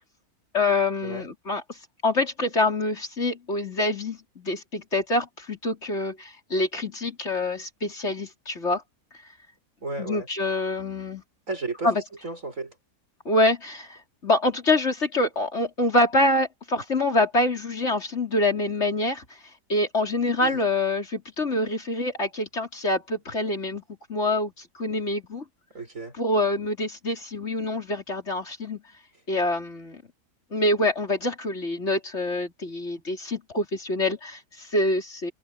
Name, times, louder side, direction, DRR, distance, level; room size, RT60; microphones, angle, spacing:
voice 1, 0.5-1.6 2.0-8.8 10.0-11.2 11.8-12.0 13.2-19.2 19.7-23.8 24.1-24.5 24.8-25.4 26.2-28.8 29.3-30.0 30.5-35.3, left 2 dB, 40° left, 4.6 m, -25 dB
voice 2, 9.8-10.3 11.5-11.9 12.2-12.7 20.4-20.6 25.7-26.1, right 3 dB, 50° right, 6.4 m, -33 dB
omnidirectional pair, 1.7 m